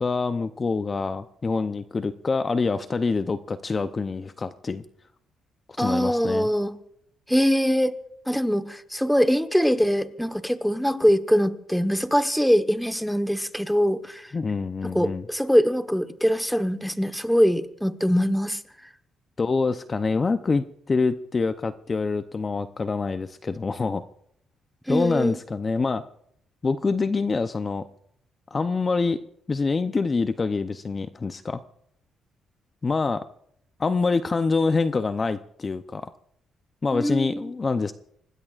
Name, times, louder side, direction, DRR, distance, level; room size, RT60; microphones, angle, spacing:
voice 1, 0.0-4.8 5.8-6.5 14.3-15.3 19.4-24.0 24.9-26.0 26.6-27.9 28.5-29.2 29.5-31.6 32.8-33.2 33.8-36.1 36.8-37.9, left 4 dB, 30° left, 10 dB, 0.7 m, -26 dB
voice 2, 5.8-6.7 7.3-8.0 8.3-14.3 14.8-18.6 24.9-25.4 36.9-37.5, equal, ahead, 9 dB, 1.2 m, -23 dB
25.5 x 19.5 x 2.5 m, 0.70 s
cardioid pair, 90°, 0 cm